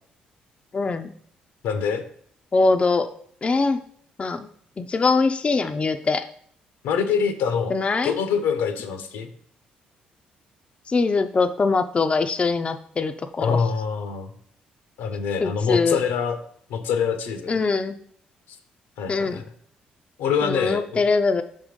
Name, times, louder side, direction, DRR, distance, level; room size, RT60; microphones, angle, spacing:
voice 1, 0.7-1.1 2.5-3.1 3.4-3.8 4.2-4.5 4.8-6.2 7.7-8.1 10.9-13.6 15.4-16.0 17.5-18.0 19.1-19.4 20.4-21.4, left 4 dB, 35° left, 7 dB, 0.5 m, -22 dB
voice 2, 1.6-2.0 6.8-7.7 8.0-9.3 13.4-14.3 15.0-16.4 16.7-17.6 19.0-19.5 20.2-21.0, left 6 dB, 80° left, 9 dB, 0.8 m, -25 dB
5.6 x 3.7 x 5.1 m, 0.62 s
hypercardioid pair, 55°, 4 cm